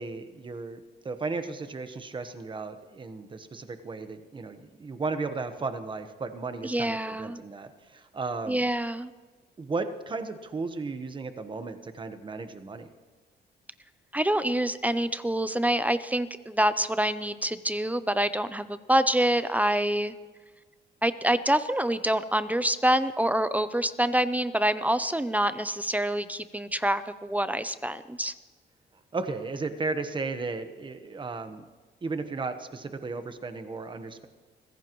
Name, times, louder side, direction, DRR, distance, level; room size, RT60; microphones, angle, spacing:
voice 1, 0.0-8.6 9.6-12.9 29.1-31.7 32.0-34.3, right 3 dB, 25° right, 9 dB, 1.1 m, -35 dB
voice 2, 6.6-7.4 8.5-9.1 14.1-20.1 21.0-28.3, right 1 dB, 10° right, 13 dB, 0.5 m, -26 dB
24.5 x 16.0 x 3.1 m, 1.4 s
cardioid pair, 135°, 19 cm